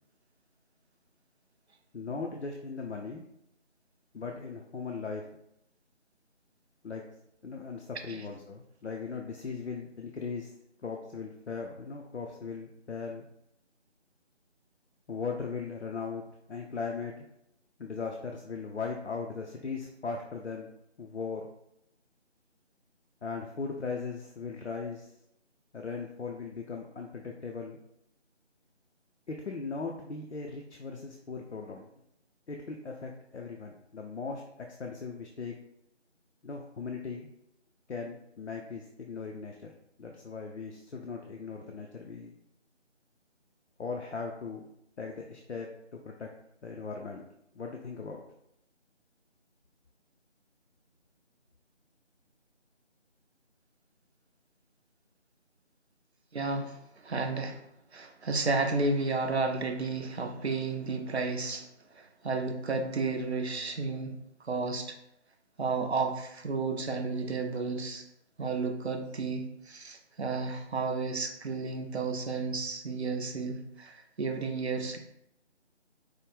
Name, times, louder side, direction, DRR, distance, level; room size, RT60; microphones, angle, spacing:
voice 1, 1.9-3.2 4.1-5.2 6.8-7.0 7.4-10.5 10.8-13.2 15.1-16.2 16.5-17.3 17.8-20.7 21.0-21.5 23.2-25.1 25.7-27.8 29.3-31.8 32.5-34.4 34.8-35.5 36.4-37.3 37.9-42.3 43.8-44.7 45.0-46.3 46.6-47.2 47.5-48.2, left 5 dB, 65° left, 1 dB, 0.5 m, -38 dB
voice 2, 56.3-57.6 57.9-64.2 64.4-64.9 65.6-68.0 68.4-75.0, right 3 dB, 65° right, 5 dB, 0.6 m, -32 dB
4.6 x 2.1 x 3.2 m, 0.79 s
figure-of-eight pair, 165°, 36 cm